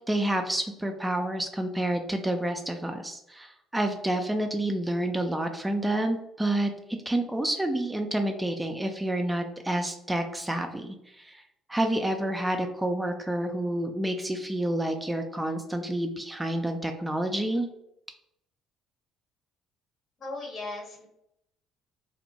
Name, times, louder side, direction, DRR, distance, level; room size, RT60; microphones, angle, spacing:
voice 1, 0.1-6.7 7.1-11.4 11.7-17.7, right 1 dB, 10° right, 5 dB, 0.3 m, -29 dB
voice 2, 20.2-21.1, left 2 dB, 50° left, 0 dB, 1.0 m, -37 dB
2.6 x 2.1 x 2.9 m, 0.80 s
hypercardioid pair, 55°, 0 cm